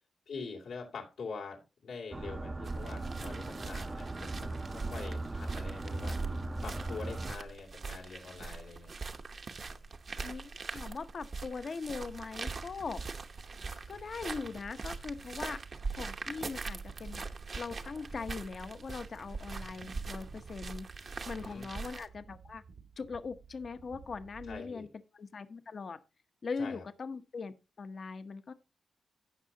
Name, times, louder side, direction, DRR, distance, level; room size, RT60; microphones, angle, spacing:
voice 1, 0.3-6.2 6.6-8.9 21.3-21.7 24.5-24.9 26.6-26.8, left 4 dB, 85° left, 2.7 m, -44 dB
sound 1, 2.1-7.4, right 2 dB, 20° right, 0.6 m, -38 dB
sound 2, 2.7-22.1, right 4 dB, 50° right, 0.9 m, -42 dB
voice 2, 10.2-13.0 13.9-15.6 15.9-17.3 17.6-20.9 21.3-22.6 23.0-24.9 25.1-26.0 26.4-28.5, left 4 dB, 50° left, 0.8 m, -40 dB
sound 3, 12.0-24.6, right 6 dB, 80° right, 2.0 m, -54 dB
16.5 x 5.5 x 2.8 m
cardioid pair, 95°, 0 cm